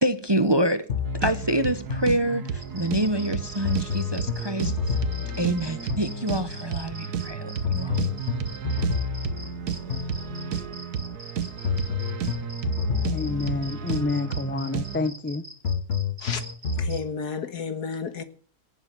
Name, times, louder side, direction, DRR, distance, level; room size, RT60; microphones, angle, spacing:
voice 1, 0.0-0.8 1.2-4.7 5.4-8.0, right 1 dB, 20° right, 0.8 m, -26 dB
sound 1, 0.9-2.8 3.6-6.7 7.6-10.7 11.6-14.7 15.6-17.0, left 6 dB, 50° left, 1.4 m, -30 dB
sound 2, 1.0-15.1, right 8 dB, 75° right, 1.6 m, -33 dB
sound 3, 2.6-17.0, right 1 dB, 35° right, 2.7 m, -43 dB
voice 2, 13.1-15.4, left 3 dB, 15° left, 0.4 m, -28 dB
voice 3, 16.8-18.2, left 6 dB, 80° left, 2.1 m, -31 dB
18.0 x 7.5 x 7.8 m
omnidirectional pair, 1.7 m